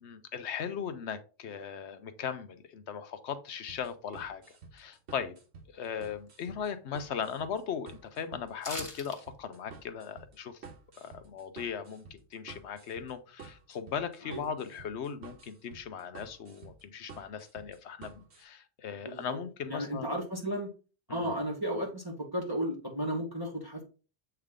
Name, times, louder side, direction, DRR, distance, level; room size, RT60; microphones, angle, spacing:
voice 1, 0.0-4.4 4.7-5.3 5.7-10.6 11.0-20.1 21.1-21.3, left 7 dB, 75° left, 1.0 m, -38 dB
sound 1, 3.7-18.4, right 4 dB, 70° right, 1.4 m, -51 dB
sound 2, 8.6-9.2 9.5-9.6, left 2 dB, 30° left, 1.2 m, -39 dB
voice 2, 18.9-19.4 19.7-20.7 21.1-23.8, equal, 20° right, 1.4 m, -34 dB
7.8 x 3.4 x 3.6 m
omnidirectional pair, 1.2 m